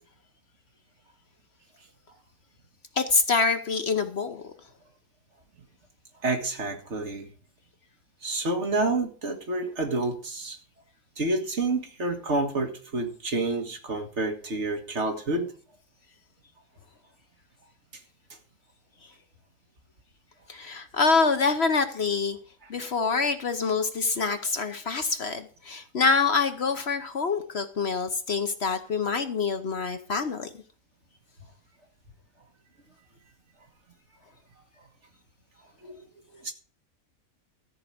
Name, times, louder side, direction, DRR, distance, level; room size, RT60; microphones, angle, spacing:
voice 1, 3.0-4.4 20.5-22.4 22.7-30.5, left 4 dB, 50° left, 8 dB, 1.1 m, -26 dB
voice 2, 6.2-7.3 8.2-10.6 11.2-15.5 35.8-36.0 36.4-36.5, right 2 dB, 50° right, 5 dB, 2.0 m, -28 dB
14.0 x 4.8 x 8.6 m, 0.42 s
omnidirectional pair, 1.5 m